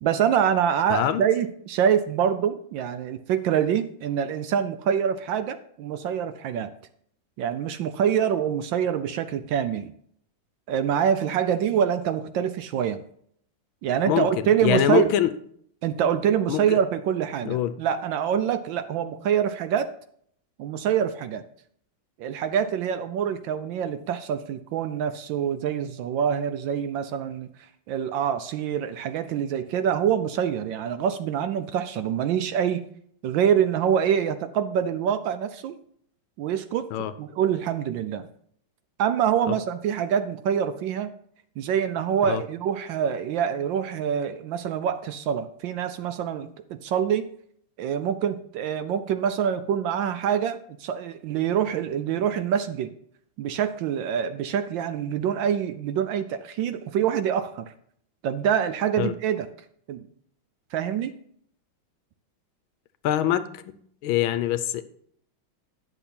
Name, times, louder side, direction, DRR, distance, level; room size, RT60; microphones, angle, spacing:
voice 1, 0.0-6.7 7.4-9.9 10.7-13.0 13.8-15.1 15.8-19.9 20.6-21.4 22.2-27.5 27.9-32.8 33.2-35.8 36.4-36.9 37.2-38.3 39.0-41.1 41.6-47.3 47.8-52.9 53.4-57.7 58.2-59.5 59.9-60.1 60.7-61.2, right 8 dB, 75° right, 10 dB, 1.1 m, -25 dB
voice 2, 0.9-1.2 14.0-14.3 14.6-15.3 16.5-16.8 17.4-17.7 36.9-37.1 39.5-39.6 42.2-42.4 59.0-59.1 63.0-63.7 64.0-64.8, left 11 dB, 75° left, 13 dB, 1.3 m, -24 dB
10.0 x 6.8 x 4.2 m, 0.66 s
omnidirectional pair, 2.4 m